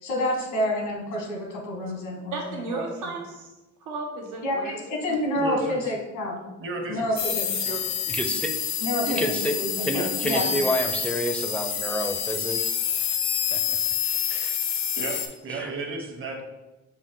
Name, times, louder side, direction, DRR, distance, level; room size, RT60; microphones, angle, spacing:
voice 1, 0.0-2.9 4.4-6.4 6.9-7.4 8.8-10.5, left 1 dB, 90° left, 0 dB, 1.3 m, -28 dB
voice 2, 2.3-3.5 3.8-4.8 5.1-5.2 7.6-8.0, right 3 dB, 85° right, 0 dB, 1.0 m, -34 dB
voice 3, 5.4-5.9 6.6-7.3 7.6-7.8 9.9-10.1 14.9-16.4, right 3 dB, 45° right, 2 dB, 0.9 m, -33 dB
sound 1, 7.2-15.3, left 7 dB, 65° left, 0.6 m, -28 dB
voice 4, 8.1-8.5 9.1-9.6 9.8-12.8 13.5-13.6 14.3-14.6 15.6-15.7, equal, 5° left, 5 dB, 0.4 m, -29 dB
5.2 x 2.5 x 3.7 m, 1.0 s
cardioid pair, 90°, 30 cm